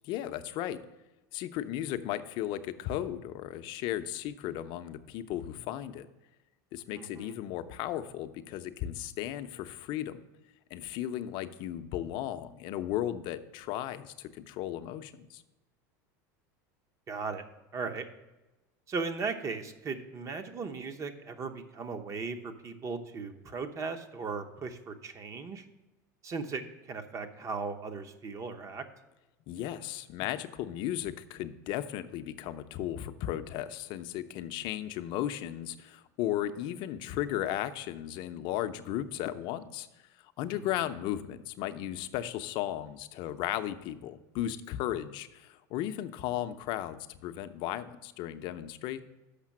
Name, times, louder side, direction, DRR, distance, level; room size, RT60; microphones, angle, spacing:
voice 1, 0.0-0.8 1.3-6.1 6.7-10.2 10.7-15.4 29.5-39.9 40.4-49.0, left 12 dB, 55° left, 10 dB, 0.6 m, -35 dB
voice 2, 7.0-7.3 17.1-17.4 17.7-18.1 18.9-25.7 26.2-26.6 26.9-28.8 40.5-40.6, right 4 dB, 30° right, 8 dB, 0.8 m, -37 dB
6.7 x 5.6 x 7.3 m, 1.1 s
supercardioid pair, 110°, 10 cm